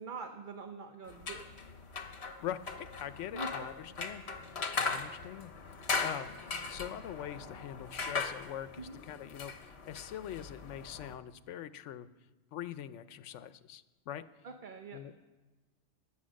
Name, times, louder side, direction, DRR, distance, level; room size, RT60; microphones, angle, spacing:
voice 1, 0.0-1.4 3.3-3.7 8.8-9.0 14.4-15.0, right 4 dB, 45° right, 6 dB, 0.9 m, -44 dB
sound 1, 1.1-11.1, left 4 dB, 65° left, 1.4 m, -39 dB
voice 2, 2.4-2.8 3.0-5.5 6.0-6.3 6.7-12.1 12.5-14.2 14.9-15.1, left 10 dB, 85° left, 14 dB, 1.0 m, -43 dB
16.0 x 10.5 x 6.4 m, 1.2 s
omnidirectional pair, 1.2 m